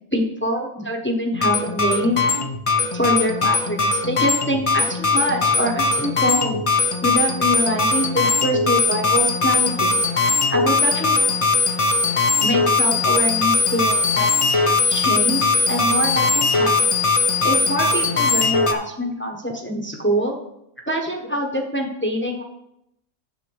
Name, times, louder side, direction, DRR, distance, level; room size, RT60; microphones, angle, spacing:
voice 1, 0.1-2.2 2.9-6.6 7.0-10.0 10.5-11.4 12.4-14.3 14.9-16.7 17.4-20.4 20.9-22.4, equal, 10° left, 0 dB, 1.1 m, -24 dB
sound 1, 1.3-18.7, left 3 dB, 30° left, 0.7 m, -20 dB
9.3 x 6.9 x 4.7 m, 0.80 s
omnidirectional pair, 1.5 m